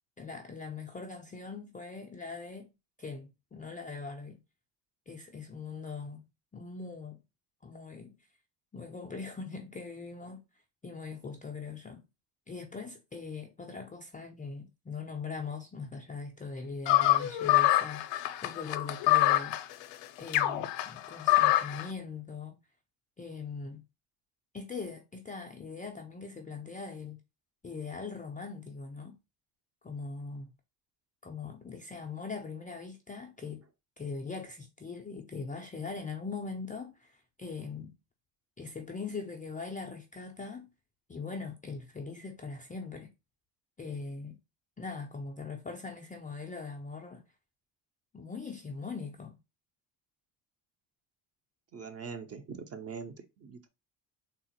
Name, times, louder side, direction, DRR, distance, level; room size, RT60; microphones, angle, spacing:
voice 1, 0.2-2.7 3.0-4.4 5.1-6.3 6.5-7.2 7.6-8.2 8.7-10.4 10.8-12.0 12.5-19.6 20.2-22.6 23.2-23.8 24.5-27.2 27.6-29.2 29.8-30.5 31.2-33.6 34.0-37.9 38.6-40.7 41.1-43.1 43.8-44.4 44.8-47.2 48.1-49.4, left 4 dB, 20° left, 0.3 m, -41 dB
sound 1, 16.9-21.9, left 16 dB, 65° left, 0.6 m, -26 dB
voice 2, 51.7-53.7, right 5 dB, 30° right, 0.5 m, -42 dB
3.7 x 2.0 x 2.8 m
supercardioid pair, 80°, 48 cm